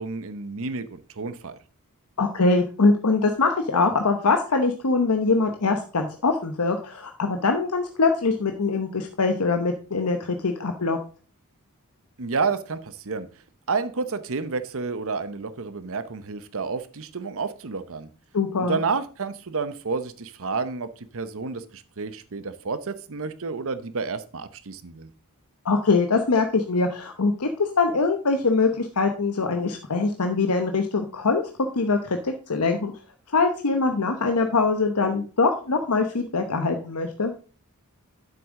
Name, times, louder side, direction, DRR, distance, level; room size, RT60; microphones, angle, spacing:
voice 1, 0.0-1.6 12.2-13.3 13.7-18.1 18.6-25.1, right 4 dB, 65° right, 12 dB, 0.9 m, -30 dB
voice 2, 2.2-11.0 18.3-18.8 25.6-31.4 31.7-32.9 33.3-37.3, left 3 dB, 85° left, 5 dB, 1.0 m, -23 dB
9.7 x 7.6 x 3.7 m, 0.37 s
head